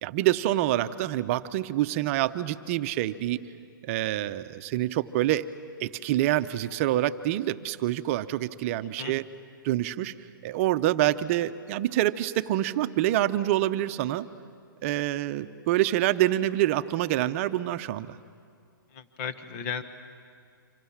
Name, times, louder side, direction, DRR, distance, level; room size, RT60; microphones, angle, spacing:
voice 1, 0.0-3.4 3.8-5.5 5.8-9.3 9.6-10.1 10.4-14.3 14.8-18.2, right 14 dB, 35° right, 11 dB, 0.8 m, -26 dB
voice 2, 18.9-19.8, left 7 dB, 40° left, 10 dB, 1.6 m, -35 dB
29.0 x 26.0 x 7.4 m, 2.2 s
hypercardioid pair, 145°, 12 cm